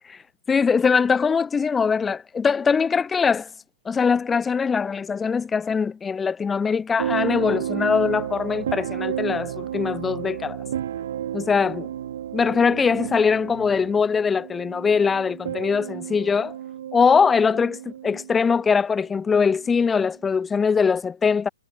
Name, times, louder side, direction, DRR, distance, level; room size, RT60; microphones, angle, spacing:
voice 1, 0.5-3.5 3.9-10.6 11.3-11.9 12.3-16.6 16.9-17.8 18.0-21.5, left 5 dB, 5° left, 0.3 m, -22 dB
sound 1, 7.0-18.7 19.6-19.9, right 10 dB, 40° right, 3.1 m, -32 dB
hypercardioid pair, 180°, 0 cm